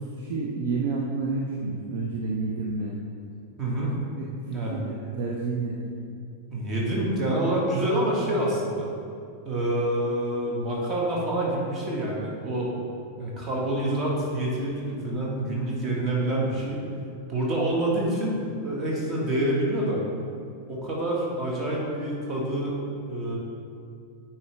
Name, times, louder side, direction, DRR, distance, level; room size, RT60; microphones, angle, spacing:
voice 1, 0.1-3.0 4.2-5.8, right 3 dB, 50° right, -2 dB, 0.6 m, -30 dB
voice 2, 3.6-4.0 4.5-4.8 6.5-8.9 9.4-12.7 13.2-16.8 17.3-20.0 20.7-22.8 23.1-23.4, right 1 dB, 30° right, -3 dB, 1.8 m, -27 dB
9.3 x 4.5 x 3.4 m, 2.4 s
figure-of-eight pair, 90°, 0 cm